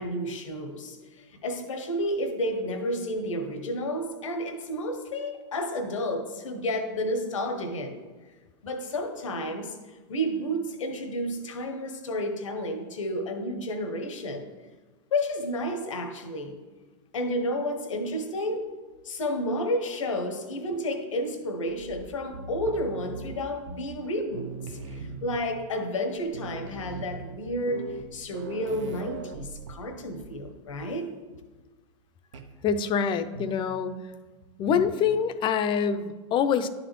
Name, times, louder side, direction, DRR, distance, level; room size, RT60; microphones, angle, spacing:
voice 1, 0.0-8.0 8.6-14.5 15.1-16.6 17.1-18.8 19.0-31.1, equal, 80° left, 7 dB, 0.8 m, -31 dB
sound 1, 21.7-24.1 24.3-25.7 26.0-26.1 26.3-30.4 30.7-31.0 32.3-32.6 33.3-33.7 34.7-35.1, right 4 dB, 75° right, 0.7 m, -41 dB
voice 2, 32.6-33.9 34.6-36.7, left 7 dB, 30° left, 10 dB, 0.4 m, -25 dB
10.5 x 4.1 x 3.0 m, 1.3 s
hypercardioid pair, 100°, 16 cm